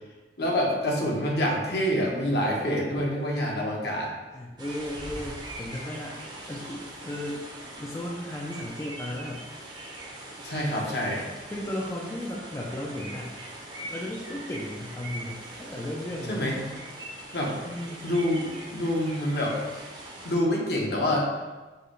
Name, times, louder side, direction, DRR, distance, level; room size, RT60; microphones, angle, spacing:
voice 1, 0.4-4.1 10.4-11.3 16.3-16.6 17.3-17.6 18.0-19.6 20.2-21.3, equal, 60° left, -2 dB, 1.0 m, -26 dB
voice 2, 4.3-6.2 6.5-7.5 7.8-9.5 11.5-13.4 13.8-16.5 17.7-18.0, left 1 dB, 15° left, -3 dB, 0.4 m, -35 dB
sound 1, 4.6-20.3, right 1 dB, 25° right, 0.7 m, -42 dB
4.7 x 2.2 x 4.7 m, 1.2 s
head